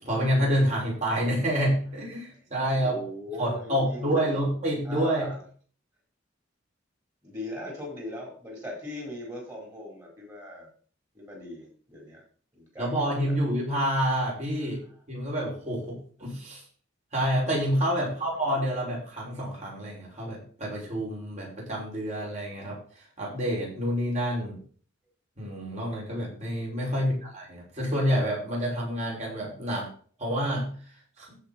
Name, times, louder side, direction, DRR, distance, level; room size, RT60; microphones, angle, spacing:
voice 1, 0.0-3.0 3.4-5.3 12.8-14.8 15.1-16.6 17.1-22.8 23.2-24.6 25.4-29.9 30.2-30.7 31.2-31.4, equal, 35° right, -4 dB, 5.7 m, -28 dB
voice 2, 2.7-4.4 4.8-5.4 7.2-10.7 11.1-12.2 12.5-13.3 18.0-18.2 26.9-27.2, left 1 dB, 20° right, -2 dB, 4.2 m, -39 dB
15.0 x 5.6 x 4.4 m, 0.43 s
head